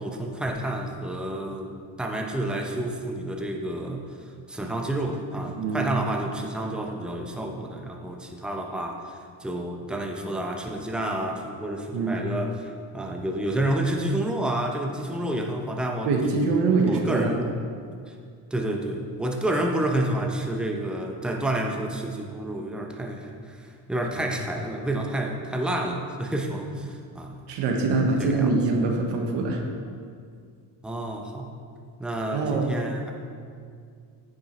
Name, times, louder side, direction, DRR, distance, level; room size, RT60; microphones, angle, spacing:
voice 1, 0.0-16.1 16.8-17.5 18.1-18.2 18.5-27.4 28.2-28.5 30.8-31.5 32.0-33.1, right 1 dB, ahead, 1 dB, 0.8 m, -29 dB
voice 2, 5.6-5.9 11.9-12.2 16.0-17.4 27.5-29.6 32.3-32.7, right 3 dB, 80° right, 2 dB, 1.2 m, -24 dB
9.3 x 5.4 x 4.3 m, 2.2 s
cardioid pair, 85°, 41 cm